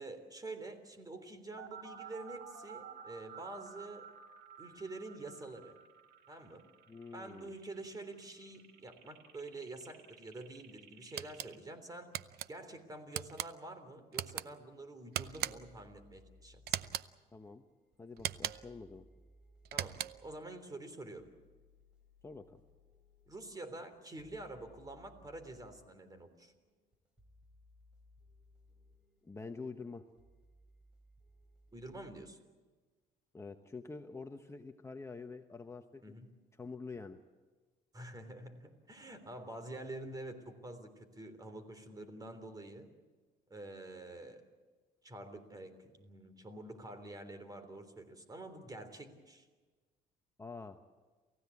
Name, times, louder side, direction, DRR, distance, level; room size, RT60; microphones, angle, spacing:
voice 1, 0.0-4.1 4.6-5.7 6.3-6.6 7.1-12.1 12.5-16.8 19.7-21.3 23.3-26.5 31.7-32.4 36.0-36.3 37.9-42.9 43.5-44.4 45.0-49.5, right 2 dB, 20° right, 10 dB, 3.4 m, -47 dB
sound 1, 1.6-11.6, right 7 dB, 90° right, 2.1 m, -53 dB
voice 2, 6.9-7.5 17.3-17.6 18.0-19.1 22.2-22.6 29.2-30.0 33.3-36.0 36.6-37.2 50.4-50.8, left 4 dB, 15° left, 5 dB, 1.0 m, -46 dB
sound 2, 11.2-11.5 12.1-12.5 13.1-13.5 14.1-14.5 15.1-15.8 16.7-17.1 18.2-18.8 19.7-20.3, right 12 dB, 70° right, 0.7 m, -39 dB
sound 3, 15.2-32.3, left 1 dB, 5° right, 4.9 m, -64 dB
28.5 x 16.0 x 8.5 m, 1.3 s
cardioid pair, 110°, 17 cm